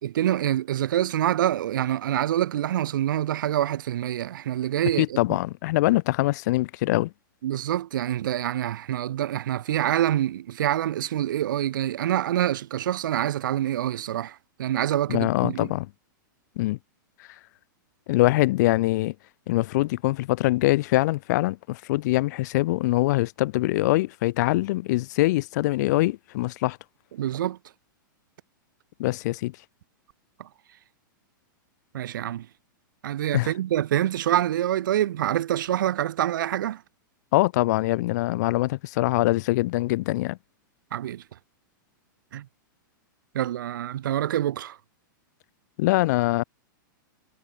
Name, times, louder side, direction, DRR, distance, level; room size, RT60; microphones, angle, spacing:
voice 1, 0.0-5.2 7.4-15.7 27.2-27.6 31.9-32.5 33.0-36.8 40.9-41.2 42.3-42.5 43.4-44.8, right 12 dB, 70° right, 5.1 m, -26 dB
voice 2, 5.0-7.1 15.1-15.9 16.6-16.8 18.1-19.1 19.5-26.8 29.0-29.6 33.3-33.5 37.3-40.4 45.8-46.4, left 18 dB, 55° left, 4.8 m, -23 dB
hypercardioid pair, 135°, 11 cm